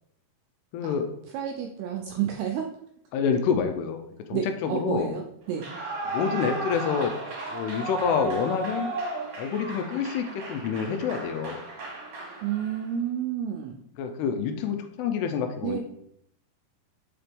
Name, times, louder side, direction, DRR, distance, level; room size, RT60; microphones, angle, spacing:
voice 1, 0.7-1.1 3.1-4.0 4.3-5.1 6.1-7.1 7.5-9.0 9.4-11.6 14.0-15.8, left 6 dB, 80° left, 7 dB, 2.5 m, -27 dB
voice 2, 1.3-2.7 4.3-5.7 12.4-13.8 15.6-15.8, right 9 dB, 85° right, 2 dB, 2.3 m, -30 dB
Clapping / Cheering / Applause, 5.5-12.9, right 2 dB, 50° right, 1.9 m, -35 dB
5.8 x 4.8 x 3.4 m, 0.74 s
omnidirectional pair, 5.0 m